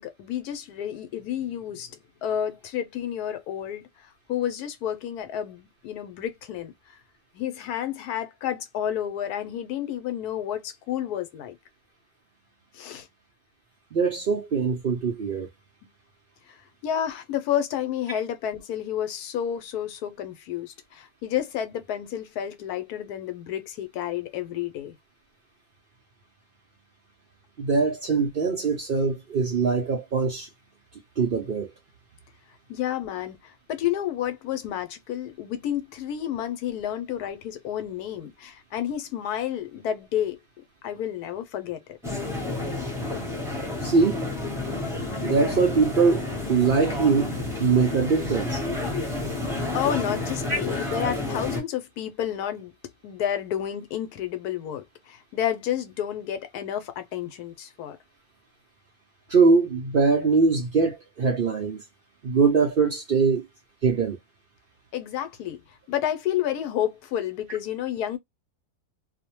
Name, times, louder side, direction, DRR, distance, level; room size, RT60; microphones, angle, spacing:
voice 1, 0.0-1.9 2.2-3.8 4.3-6.7 7.3-11.6 12.7-13.1 16.5-16.6 16.8-24.9 32.7-40.4 40.8-41.8 49.7-52.7 53.0-58.0 64.9-65.6 65.9-68.2, left 10 dB, 85° left, 1.1 m, -30 dB
voice 2, 13.9-15.5 27.6-30.5 31.2-31.7 43.8-44.2 45.2-47.3 47.6-48.6 59.3-61.8 62.2-63.5 63.8-64.2, right 4 dB, 65° right, 0.5 m, -22 dB
sound 1, 42.0-51.6, left 2 dB, 5° right, 0.7 m, -30 dB
2.6 x 2.1 x 2.9 m
omnidirectional pair, 1.6 m